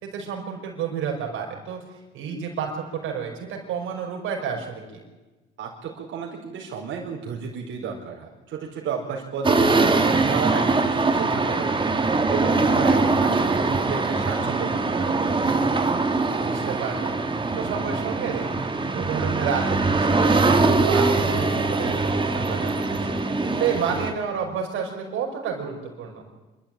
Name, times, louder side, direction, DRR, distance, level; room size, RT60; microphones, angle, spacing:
voice 1, 0.0-5.0 12.7-13.0 16.4-17.1 17.6-26.2, right 7 dB, 90° right, 0 dB, 5.3 m, -30 dB
voice 2, 5.6-15.1, right 6 dB, 75° right, -5 dB, 4.7 m, -33 dB
sound 1, 9.4-24.1, right 3 dB, 25° right, 2.1 m, -22 dB
26.5 x 12.5 x 9.1 m, 1.2 s
cardioid pair, 90°, 20 cm